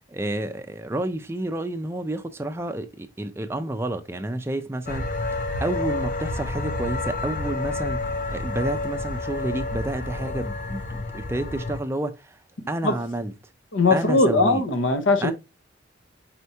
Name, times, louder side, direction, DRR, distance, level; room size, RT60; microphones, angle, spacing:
voice 1, 0.1-13.5 13.9-14.6 15.2-15.3, right 1 dB, 15° right, 0.4 m, -30 dB
sound 1, 4.9-11.8, left 2 dB, 40° left, 0.5 m, -29 dB
voice 2, 13.7-15.3, left 3 dB, 80° left, 0.9 m, -20 dB
4.6 x 4.3 x 2.7 m
head